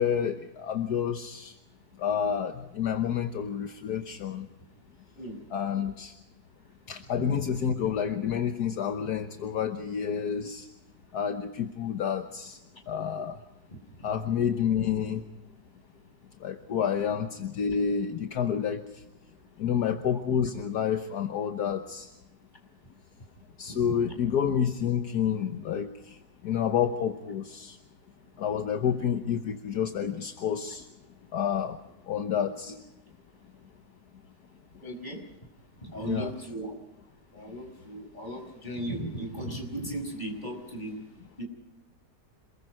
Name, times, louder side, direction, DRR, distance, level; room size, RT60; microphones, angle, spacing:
voice 1, 0.0-1.5 2.0-4.5 5.5-6.1 6.9-10.7 11.1-12.6 12.9-13.4 14.0-15.2 16.4-18.8 19.6-22.1 23.6-26.2 26.4-27.8 28.4-30.8 31.3-31.8 32.1-32.8 36.0-36.3, left 8 dB, 70° left, 6 dB, 1.6 m, -29 dB
voice 2, 34.8-35.2 35.8-36.8 37.3-41.0 41.4-41.5, right 1 dB, 25° left, 3 dB, 5.6 m, -36 dB
27.5 x 21.5 x 4.8 m, 0.94 s
omnidirectional pair, 1.8 m